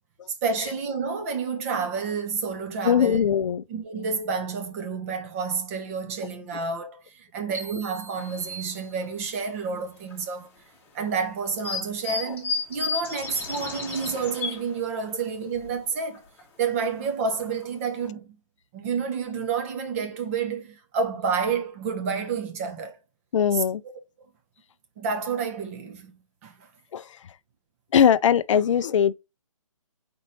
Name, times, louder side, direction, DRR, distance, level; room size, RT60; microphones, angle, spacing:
voice 1, 0.4-3.2 3.7-10.5 10.9-16.3 16.6-18.4 18.7-23.0 23.5-23.6 25.0-26.1 26.4-26.7, right 5 dB, 25° right, 0.8 m, -29 dB
voice 2, 2.8-3.6 23.3-23.8 26.9-27.1 27.9-29.1, left 8 dB, 60° left, 0.4 m, -20 dB
sound 1, 7.5-9.5, right 3 dB, 65° right, 2.0 m, -42 dB
sound 2, 8.2-8.4 9.0-9.1 10.1-10.2 11.6-14.8 15.2-15.3 15.6-15.7 16.2-16.4 17.0-17.1 17.4-17.6 18.0-18.1, left 4 dB, 10° left, 1.1 m, -32 dB
4.3 x 4.0 x 3.0 m
hypercardioid pair, 155°, 18 cm